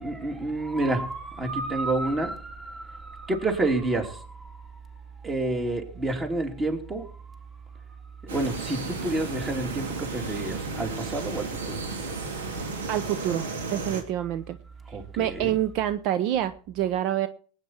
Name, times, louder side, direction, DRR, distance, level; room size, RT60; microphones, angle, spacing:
voice 1, 0.0-4.4 5.2-7.1 8.2-11.8 14.9-15.6, right 2 dB, 20° right, 3.2 m, -29 dB
sound 1, 8.3-14.0, right 3 dB, 85° right, 3.0 m, -33 dB
voice 2, 12.9-14.6 15.2-17.3, right 12 dB, 55° right, 0.8 m, -27 dB
19.0 x 9.0 x 4.5 m
hypercardioid pair, 105°, 0 cm